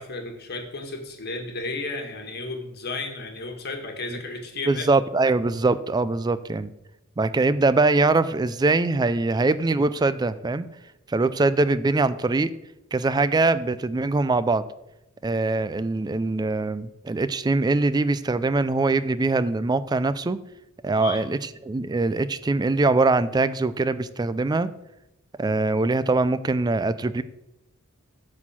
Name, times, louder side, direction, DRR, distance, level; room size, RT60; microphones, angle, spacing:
voice 1, 0.0-4.9 20.9-21.2, left 2 dB, 50° left, 3 dB, 1.5 m, -33 dB
voice 2, 4.7-6.7 7.2-10.7 11.1-12.5 12.9-14.6 15.2-20.4 20.8-24.7 25.4-27.2, right 3 dB, 20° right, 15 dB, 0.3 m, -22 dB
8.9 x 4.3 x 7.2 m, 0.89 s
head